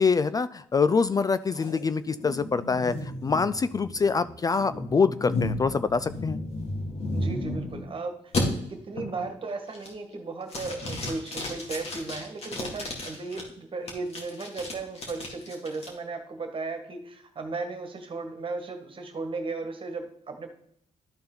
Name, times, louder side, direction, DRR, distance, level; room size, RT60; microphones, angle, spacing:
voice 1, 0.0-6.4, left 5 dB, 30° left, 14 dB, 0.3 m, -25 dB
sound 1, 1.5-7.9 8.3-8.4 9.0-9.3 9.7-10.1 10.5-13.4 13.9-15.9, left 2 dB, 55° left, 2.4 m, -34 dB
voice 2, 7.1-8.3 8.7-20.5, right 3 dB, 45° right, 6 dB, 1.6 m, -36 dB
12.5 x 4.3 x 3.9 m, 0.68 s
cardioid pair, 75°, 13 cm